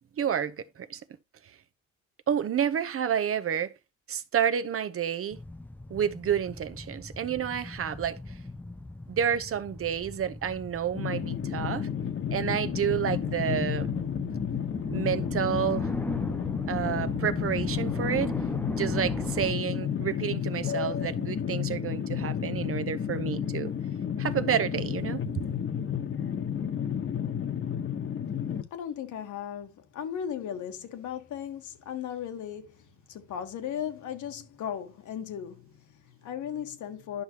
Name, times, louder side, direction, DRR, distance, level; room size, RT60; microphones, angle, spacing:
voice 1, 0.2-1.0 2.3-3.7 4.1-5.4 5.9-8.2 9.1-11.9 12.3-13.9 14.9-15.9 16.7-18.4 18.8-23.7 24.2-25.4, right 8 dB, 45° right, 0.8 m, -29 dB
sound 1, 5.3-19.5, left 2 dB, 5° left, 0.4 m, -37 dB
sound 2, 10.9-28.6, left 8 dB, 45° left, 1.1 m, -31 dB
voice 2, 28.7-37.2, left 9 dB, 75° left, 1.4 m, -37 dB
11.0 x 5.7 x 2.9 m
cardioid pair, 90°, 30 cm